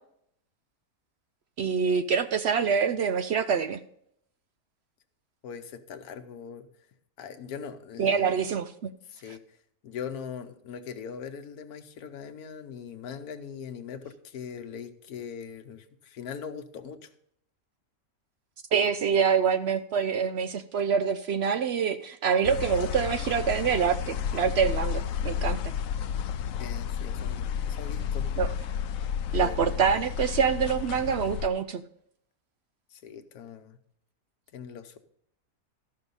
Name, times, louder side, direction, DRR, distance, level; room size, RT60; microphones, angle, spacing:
voice 1, 1.6-3.8 8.0-8.9 18.7-25.6 28.4-28.5 29.3-31.8, right 6 dB, 65° right, 11 dB, 0.6 m, -25 dB
voice 2, 5.4-6.7 7.2-8.4 9.1-9.4 9.8-17.1 26.6-28.3 29.4-29.8 32.9-33.8 34.5-35.0, left 7 dB, 90° left, 9 dB, 1.3 m, -41 dB
sound 1, 22.4-31.5, left 8 dB, 70° left, 1.0 m, -31 dB
13.5 x 5.6 x 5.4 m, 0.70 s
omnidirectional pair, 1.6 m